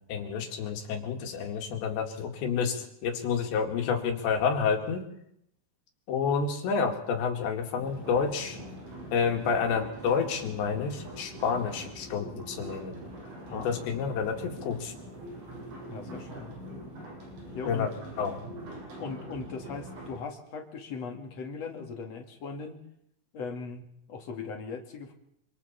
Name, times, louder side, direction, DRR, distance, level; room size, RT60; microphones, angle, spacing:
voice 1, 0.1-5.0 6.1-8.6 9.1-13.0 13.5-14.9 17.7-17.9 18.2-18.5, left 6 dB, 70° left, 3 dB, 4.3 m, -29 dB
sound 1, 7.8-20.2, right 1 dB, 80° right, 9.5 m, -43 dB
voice 2, 15.9-16.5 17.5-17.9 19.0-22.8 23.3-25.1, left 4 dB, 45° left, 3 dB, 2.7 m, -39 dB
26.0 x 25.5 x 4.3 m, 0.74 s
omnidirectional pair, 5.4 m